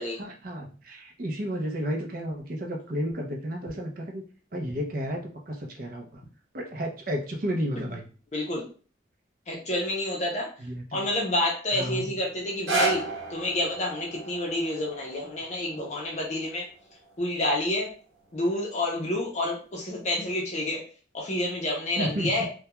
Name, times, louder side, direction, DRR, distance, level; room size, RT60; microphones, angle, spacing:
voice 1, 0.2-4.2 4.5-6.2 6.5-8.1 10.6-11.1 11.7-12.2 22.0-22.5, equal, 50° right, 1 dB, 0.5 m, -32 dB
voice 2, 8.3-8.6 9.5-10.5 10.9-13.0 13.3-16.7 17.2-17.9 18.3-20.8 21.1-22.5, left 1 dB, 35° left, -2 dB, 0.5 m, -28 dB
sound 1, 12.4-18.5 19.2-19.3, right 2 dB, 80° right, 0.8 m, -34 dB
2.3 x 2.2 x 2.9 m, 0.40 s
head